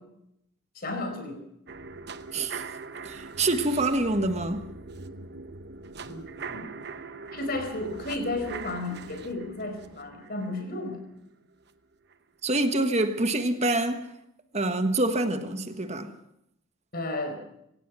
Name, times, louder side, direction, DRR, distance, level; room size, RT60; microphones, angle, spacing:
voice 1, 0.7-1.4 6.0-6.7 7.3-11.0 16.9-17.4, left 2 dB, 45° left, 4.6 m, -33 dB
sound 1, 1.7-11.7 12.1-12.2, right 4 dB, 50° right, 1.0 m, -42 dB
voice 2, 2.3-2.6 3.0-4.7 12.4-14.1 14.5-16.1, right 2 dB, 30° right, 1.4 m, -26 dB
25.5 x 16.5 x 6.2 m
head